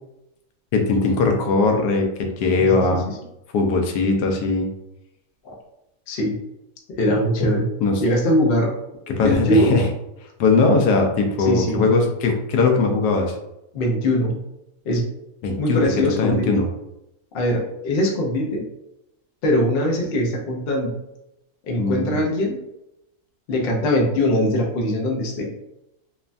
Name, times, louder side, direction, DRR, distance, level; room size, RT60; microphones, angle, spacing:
voice 1, 0.7-3.1 3.5-4.7 7.8-8.0 9.1-9.8 10.4-13.3 15.4-15.9 16.2-16.7 21.8-22.2, left 3 dB, 85° left, 3 dB, 1.1 m, -20 dB
voice 2, 6.1-6.4 6.9-7.7 8.0-8.7 9.2-9.7 11.4-11.9 13.7-14.4 14.9-15.0 15.6-16.6 17.3-18.7 19.4-20.9 21.7-22.6 23.5-25.5, left 1 dB, 65° left, 0 dB, 0.6 m, -21 dB
3.1 x 2.2 x 2.5 m, 0.87 s
omnidirectional pair, 1.7 m